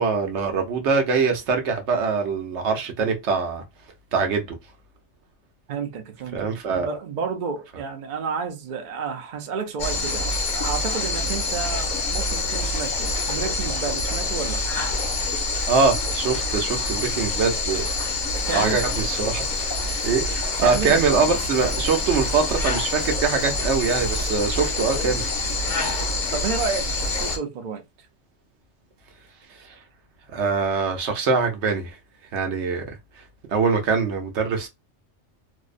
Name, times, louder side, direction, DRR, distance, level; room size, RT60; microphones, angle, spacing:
voice 1, 0.0-3.6 4.1-4.5 6.3-6.9 15.7-17.8 18.5-19.6 20.0-25.3 30.3-31.9 32.3-32.8 33.5-34.7, right 5 dB, 70° right, 0.9 m, -23 dB
voice 2, 5.7-14.6 18.5-18.9 20.6-21.0 26.3-27.8, right 5 dB, 50° right, 0.6 m, -30 dB
sound 1, 9.8-27.4, left 2 dB, 45° left, 0.8 m, -26 dB
2.6 x 2.0 x 2.4 m
omnidirectional pair, 1.2 m